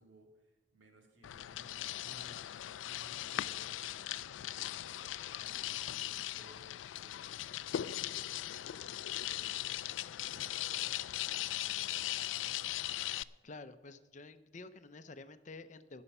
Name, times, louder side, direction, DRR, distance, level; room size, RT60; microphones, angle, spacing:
voice 1, 0.0-2.5 2.8-7.7 8.1-12.8, right 1 dB, 80° right, 2 dB, 2.6 m, -62 dB
sound 1, 1.2-13.2, left 13 dB, 80° left, 0.3 m, -39 dB
voice 2, 13.4-16.0, left 3 dB, 40° left, 11 dB, 0.6 m, -50 dB
19.0 x 7.0 x 5.5 m, 1.1 s
head